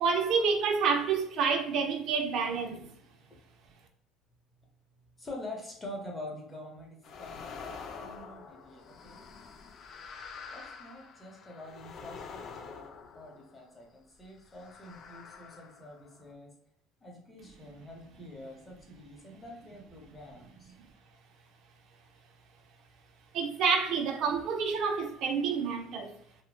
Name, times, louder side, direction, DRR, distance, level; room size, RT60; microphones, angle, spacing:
voice 1, 0.0-2.8 23.3-26.1, right 5 dB, 60° right, 5 dB, 0.4 m, -28 dB
voice 2, 5.2-9.2 10.5-12.9 13.1-16.5 17.0-20.7, left 1 dB, 20° left, 0 dB, 0.7 m, -46 dB
sound 1, 7.0-13.8 14.5-16.3, left 5 dB, 50° left, 0.3 m, -47 dB
2.9 x 2.0 x 2.2 m, 0.69 s
cardioid pair, 125°, 0 cm